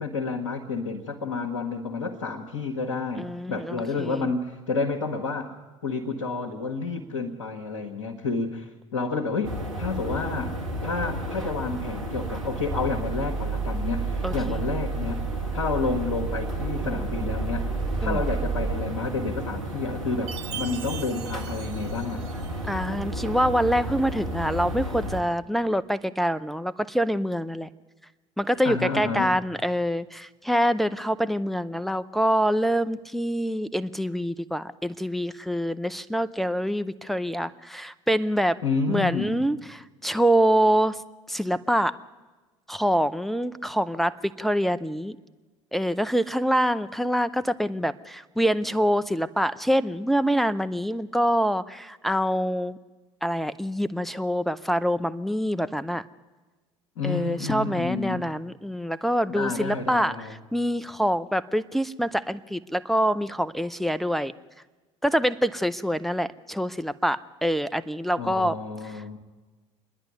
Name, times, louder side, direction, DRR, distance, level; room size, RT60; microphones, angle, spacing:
voice 1, 0.0-5.5 5.8-10.5 10.8-15.2 15.5-17.6 18.0-22.3 28.6-29.3 38.6-39.5 57.0-58.2 59.3-60.3 68.2-69.2, left 4 dB, 70° left, 0 dB, 1.5 m, -30 dB
voice 2, 3.2-4.2 14.2-14.6 18.0-18.2 22.7-27.7 28.4-38.6 38.9-41.0 41.3-42.0 42.7-45.2 45.7-52.8 53.2-56.0 57.0-64.3 65.0-68.6 68.8-69.2, equal, ahead, 10 dB, 0.6 m, -25 dB
sound 1, 9.4-25.2, right 1 dB, 80° right, 1.6 m, -33 dB
sound 2, 11.2-18.7, right 4 dB, 25° right, 5.2 m, -32 dB
Chime, 20.3-22.8, right 10 dB, 60° right, 0.9 m, -40 dB
27.0 x 10.5 x 9.4 m, 1.3 s
figure-of-eight pair, 65°, 16 cm